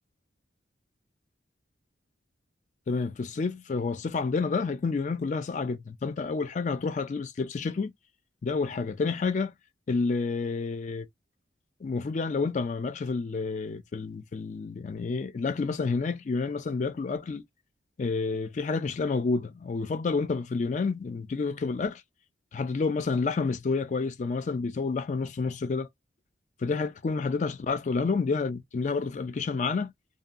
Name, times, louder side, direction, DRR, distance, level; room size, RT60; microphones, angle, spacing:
voice 1, 2.9-7.9 8.4-9.5 9.9-11.1 11.8-17.4 18.0-22.0 22.5-25.9 26.6-29.9, left 4 dB, 40° left, 0.3 m, -29 dB
2.6 x 2.2 x 2.4 m
head